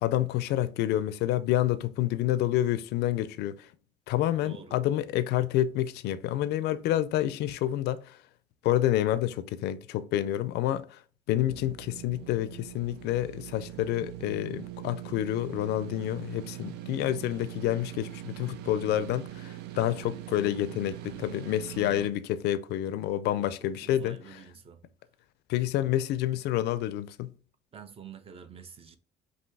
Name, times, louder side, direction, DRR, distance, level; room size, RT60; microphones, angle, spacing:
voice 1, 0.0-3.7 4.1-8.2 8.6-11.0 11.3-24.4 25.5-27.3, left 13 dB, 80° left, 0.4 m, -28 dB
voice 2, 4.4-4.8 23.3-24.8 27.7-29.0, right 7 dB, 35° right, 0.7 m, -48 dB
sound 1, 11.4-22.1, right 15 dB, 80° right, 0.5 m, -42 dB
5.3 x 2.7 x 3.3 m
cardioid pair, 110°, 17 cm